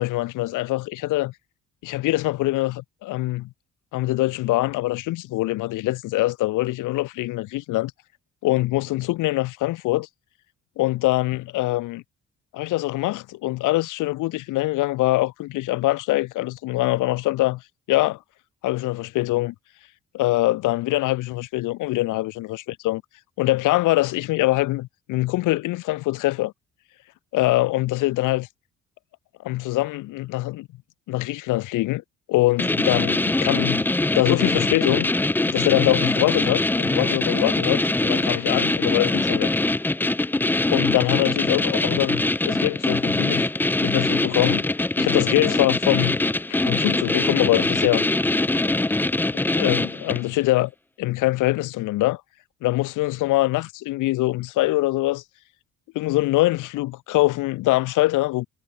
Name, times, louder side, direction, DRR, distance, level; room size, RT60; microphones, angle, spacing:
voice 1, 0.0-1.3 1.8-3.5 3.9-7.9 8.4-10.1 10.8-12.0 12.5-17.6 17.9-18.2 18.6-19.5 20.1-23.0 23.4-26.5 27.3-28.5 29.4-30.7 31.1-32.0 32.3-33.9 34.1-35.1 35.5-39.5 40.7-43.5 43.8-44.6 45.0-46.2 46.5-48.0 49.3-50.7 51.0-52.2 52.6-55.2 55.9-58.5, left 18 dB, 85° left, 0.8 m, -23 dB
sound 1, 32.6-50.3, left 2 dB, 5° left, 0.4 m, -23 dB
cardioid pair, 90°, 30 cm